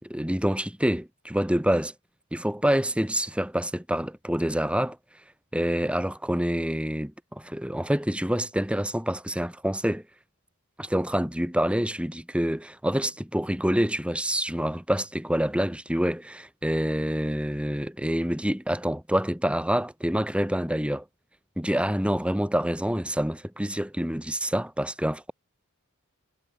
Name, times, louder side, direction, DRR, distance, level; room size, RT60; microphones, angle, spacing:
voice 1, 0.0-1.9 2.3-5.0 5.5-10.0 10.8-21.0 21.6-25.3, equal, 5° right, 3.2 m, -27 dB
head